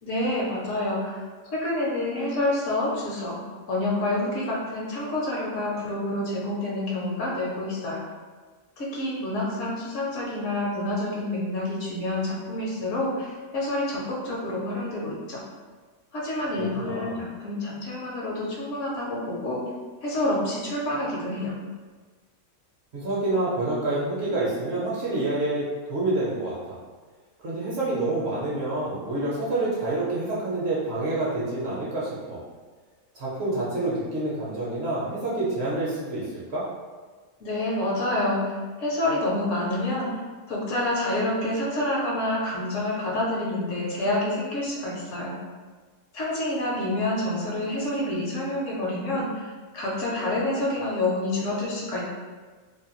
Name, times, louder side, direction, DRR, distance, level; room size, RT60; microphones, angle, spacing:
voice 1, 0.0-3.3 3.7-8.0 8.8-15.4 16.1-19.6 20.0-21.6 37.4-40.1 40.5-45.3 46.1-52.1, left 1 dB, 70° left, -4 dB, 0.9 m, -28 dB
voice 2, 16.6-17.2 22.9-26.8 27.4-32.4 33.1-36.7, right 2 dB, 55° right, -7 dB, 0.8 m, -28 dB
2.6 x 2.2 x 2.9 m, 1.4 s
omnidirectional pair, 1.5 m